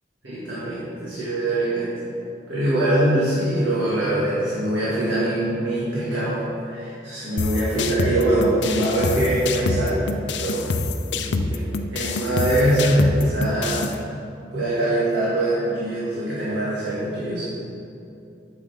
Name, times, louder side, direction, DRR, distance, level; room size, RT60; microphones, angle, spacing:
voice 1, 0.2-1.9 2.5-10.0 10.4-10.7 11.1-13.9 14.5-17.4, right 1 dB, 85° right, -9 dB, 2.0 m, -23 dB
sound 1, 7.4-14.0, left 3 dB, 80° left, 0.5 m, -26 dB
12.0 x 6.8 x 3.5 m, 2.6 s
head